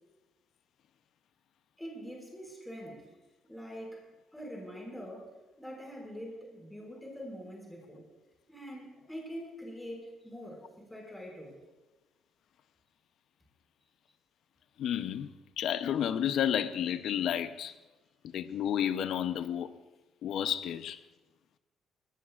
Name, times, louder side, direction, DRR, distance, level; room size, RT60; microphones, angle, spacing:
voice 1, 1.8-3.1 3.5-4.1 4.3-5.3 5.6-8.0 8.5-10.6 10.9-11.5, equal, 5° left, 5.8 m, -44 dB
voice 2, 14.8-15.3 15.6-17.8 18.2-19.7 20.2-21.0, left 9 dB, 70° left, 0.7 m, -31 dB
21.0 x 18.0 x 2.5 m
cardioid pair, 85°, 0 cm